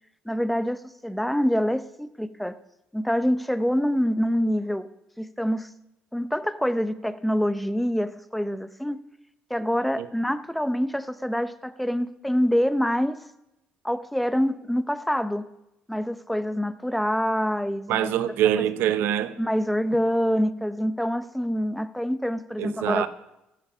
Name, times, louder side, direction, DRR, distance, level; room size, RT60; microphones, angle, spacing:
voice 1, 0.3-2.6 2.9-4.9 5.2-5.7 6.1-9.0 9.5-13.2 13.8-15.5 15.9-18.1 19.4-23.1, equal, ahead, 0.6 m, -26 dB
voice 2, 17.9-19.4 22.6-23.1, right 11 dB, 85° right, 0.8 m, -24 dB
14.0 x 9.2 x 5.5 m
cardioid pair, 110°, 4 cm